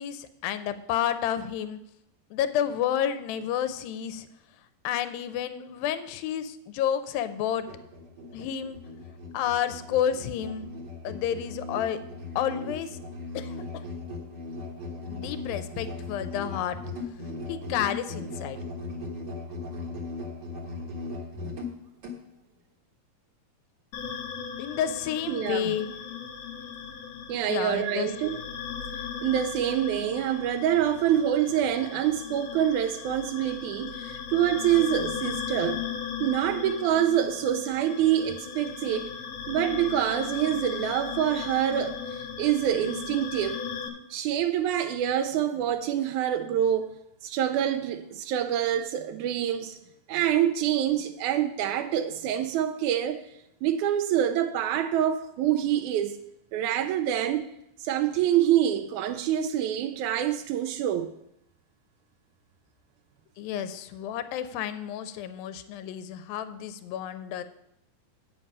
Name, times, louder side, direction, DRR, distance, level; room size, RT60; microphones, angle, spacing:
voice 1, 0.0-1.8 2.3-4.3 4.8-7.7 8.3-8.8 9.3-10.7 11.0-12.0 12.4-12.9 13.3-13.8 15.1-16.8 17.5-18.6 24.6-25.9 27.5-28.1 63.4-67.4, left 9 dB, 85° left, 2.4 m, -30 dB
Musical instrument, 7.6-22.2, left 3 dB, 60° right, 1.1 m, -38 dB
sound 1, 23.9-43.9, left 7 dB, 70° left, 1.6 m, -37 dB
voice 2, 25.3-25.8 27.3-28.4 29.2-35.8 36.2-39.1 39.5-43.6 44.1-46.9 47.2-49.8 50.1-53.2 53.6-56.2 56.5-57.5 57.8-61.1, right 10 dB, 85° right, 1.7 m, -26 dB
8.7 x 7.9 x 5.4 m
omnidirectional pair, 4.1 m